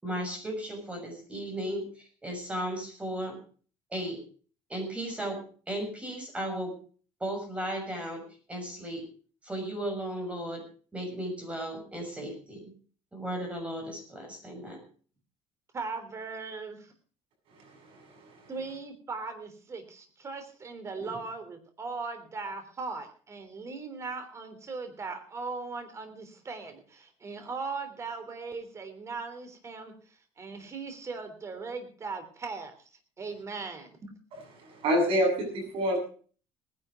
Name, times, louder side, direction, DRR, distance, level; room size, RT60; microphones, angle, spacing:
voice 1, 0.0-3.4 3.9-4.2 4.7-5.4 5.7-6.7 7.2-8.2 8.5-9.1 9.4-10.6 10.9-12.7 13.1-14.8 21.0-21.1, right 1 dB, 10° right, 3 dB, 6.7 m, -35 dB
voice 2, 15.7-16.9 18.5-32.7 33.2-34.1, right 4 dB, 30° right, 8 dB, 3.4 m, -39 dB
voice 3, 17.6-18.3 34.6-36.0, equal, 60° right, 3 dB, 7.8 m, -28 dB
19.0 x 10.5 x 5.1 m, 0.42 s
cardioid pair, 135°, 10 cm